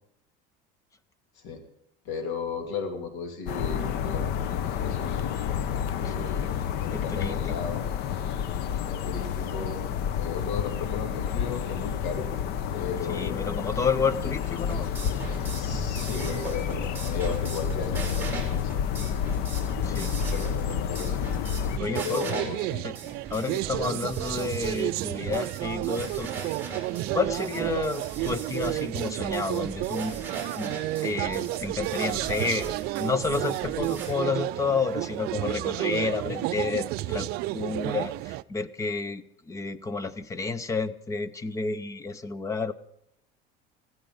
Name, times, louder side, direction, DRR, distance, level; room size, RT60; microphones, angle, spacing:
voice 1, 2.0-4.3 4.8-5.4 6.0-7.8 8.9-9.9 10.2-12.3 12.7-13.7 15.5-18.8 19.9-21.2 21.9-22.9 23.7-23.9, left 5 dB, 70° left, 6 dB, 2.7 m, -35 dB
sound 1, 3.5-21.8, left 8 dB, 55° left, 0.9 m, -30 dB
voice 2, 6.0-7.6 13.1-14.9 19.8-20.1 21.8-22.4 22.8-23.0 23.3-26.3 27.1-30.7 31.0-42.7, left 4 dB, 15° left, 16 dB, 0.6 m, -31 dB
sound 2, 14.4-34.1, right 3 dB, 10° right, 4.5 m, -39 dB
sound 3, 21.8-38.4, right 17 dB, 50° right, 0.4 m, -31 dB
15.5 x 13.0 x 5.4 m, 0.77 s
cardioid pair, 160°, 21 cm